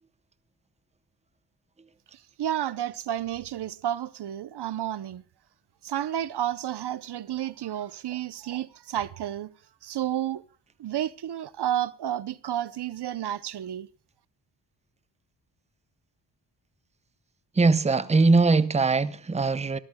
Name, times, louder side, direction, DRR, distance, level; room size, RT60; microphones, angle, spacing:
voice 1, 2.4-5.2 5.8-9.5 9.8-10.4 10.8-13.9, right 11 dB, 70° right, 0.7 m, -31 dB
voice 2, 17.6-19.8, right 3 dB, 15° right, 0.7 m, -21 dB
24.5 x 14.0 x 2.2 m
cardioid pair, 90°, 41 cm